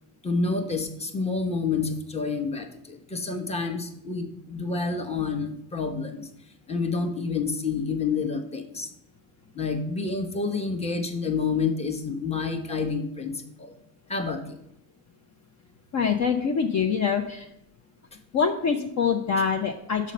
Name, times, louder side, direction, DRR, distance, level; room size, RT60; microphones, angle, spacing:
voice 1, 0.2-6.3 6.7-8.9 9.6-13.7 14.1-14.4, left 4 dB, 15° left, 6 dB, 1.0 m, -28 dB
voice 2, 15.9-17.5 18.3-20.1, left 6 dB, 35° left, 3 dB, 0.7 m, -25 dB
6.3 x 5.3 x 5.4 m, 0.79 s
hypercardioid pair, 75°, 48 cm